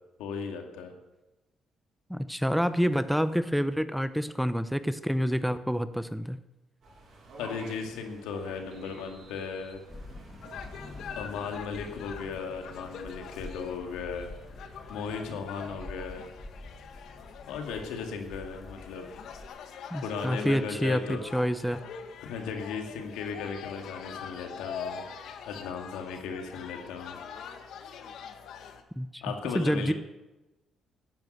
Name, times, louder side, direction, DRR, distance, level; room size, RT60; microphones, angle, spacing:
voice 1, 0.2-0.9 7.4-9.8 11.2-14.3 14.6-16.3 17.5-19.1 20.0-21.2 22.2-25.0 25.5-27.2 29.2-29.9, left 5 dB, 90° left, 4 dB, 2.3 m, -36 dB
voice 2, 2.1-6.4 19.9-21.8 29.0-29.2 29.5-29.9, equal, ahead, 13 dB, 0.8 m, -28 dB
sound 1, 6.8-15.2, right 3 dB, 55° right, 6.3 m, -52 dB
sound 2, 9.9-19.5, left 2 dB, 25° left, 2.5 m, -47 dB
sound 3, 10.4-28.8, left 7 dB, 75° left, 1.6 m, -44 dB
12.0 x 10.5 x 8.0 m, 1.0 s
cardioid pair, 75°, 0 cm